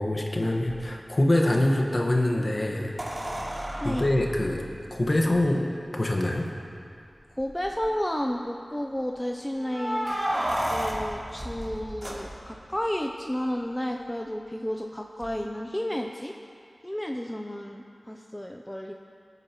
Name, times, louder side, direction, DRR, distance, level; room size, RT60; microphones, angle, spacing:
voice 1, 0.0-2.9 3.8-4.6 4.9-6.5, left 1 dB, 40° left, 0 dB, 1.4 m, -24 dB
sound 1, 0.7-0.8 3.0-5.4 6.3-6.4 6.7-6.8 7.4-7.8 9.5-12.7 15.2-15.3, equal, 25° right, 3.2 m, -32 dB
voice 2, 7.4-10.1 10.7-16.3 16.8-18.9, equal, 10° left, 2 dB, 0.6 m, -32 dB
23.0 x 8.9 x 3.1 m, 2.5 s
wide cardioid pair, 75°, 0 cm